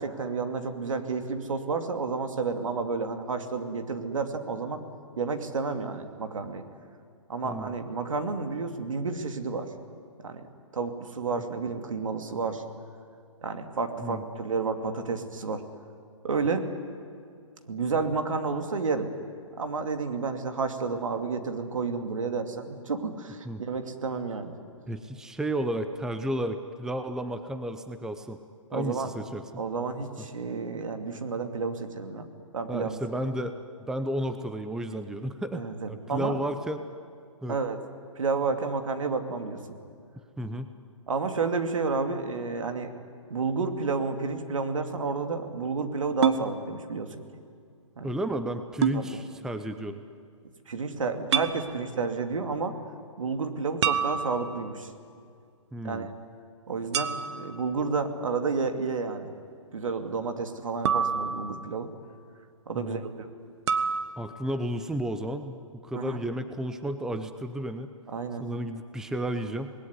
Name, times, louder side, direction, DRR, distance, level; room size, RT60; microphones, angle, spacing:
voice 1, 0.0-4.8 5.2-6.6 7.3-9.7 10.2-10.5 10.7-12.6 13.4-15.6 16.2-16.7 17.7-19.1 19.6-24.5 28.7-29.1 29.6-32.3 32.5-33.0 35.5-36.4 37.5-37.8 38.2-39.6 41.1-42.9 43.3-47.2 48.0-48.1 48.9-49.2 50.7-52.8 53.2-54.9 55.8-56.1 56.7-59.3 59.7-61.9 62.7-63.3 65.9-66.2 68.1-68.4, right 4 dB, 70° right, 6 dB, 2.9 m, -31 dB
voice 2, 7.4-7.7 14.0-14.2 23.4-23.6 24.9-28.4 28.7-29.4 32.7-36.8 37.4-37.6 40.4-40.7 48.0-50.0 55.7-56.1 62.8-63.0 64.2-67.9 68.4-69.7, right 1 dB, 5° right, 8 dB, 0.8 m, -32 dB
sound 1, 46.2-46.5 48.8-49.0 51.3-51.6 53.8-54.7 56.9-57.6 60.9-61.8 63.7-64.0, right 7 dB, 55° right, 1.5 m, -27 dB
26.5 x 20.5 x 9.8 m, 2.3 s
hypercardioid pair, 135°, 17 cm